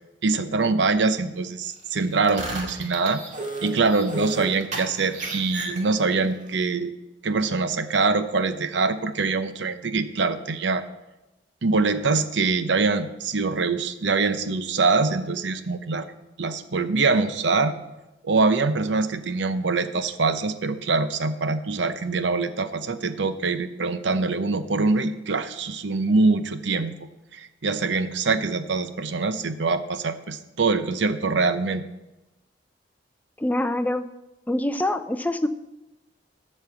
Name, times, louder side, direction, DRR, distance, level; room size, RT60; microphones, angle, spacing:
voice 1, 0.2-3.2 3.6-6.9 7.2-10.8 11.6-16.1 16.4-17.7 18.2-26.9 27.3-31.8, right 3 dB, 70° right, 11 dB, 0.8 m, -24 dB
sound 1, 2.1-6.2, right 2 dB, 45° right, 2.1 m, -33 dB
voice 2, 33.4-34.0 34.5-35.5, left 1 dB, 10° left, 9 dB, 0.5 m, -25 dB
13.0 x 5.5 x 7.8 m, 1.0 s
head